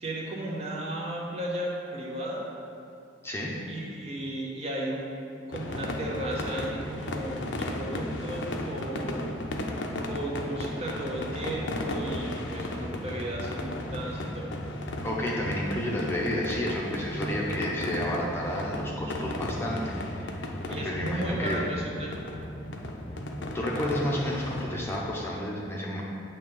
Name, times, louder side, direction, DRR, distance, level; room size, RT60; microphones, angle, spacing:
voice 1, 0.0-2.5 3.7-5.2 5.5-9.3 10.1-14.6 17.2-17.4 20.7-22.1, right 1 dB, 35° right, -3 dB, 0.8 m, -35 dB
voice 2, 3.2-3.6 15.0-21.6 23.5-26.0, left 1 dB, 15° left, -4 dB, 0.7 m, -31 dB
sound 1, 5.5-25.0, left 1 dB, 85° left, 0.6 m, -34 dB
8.0 x 2.9 x 5.4 m, 2.6 s
head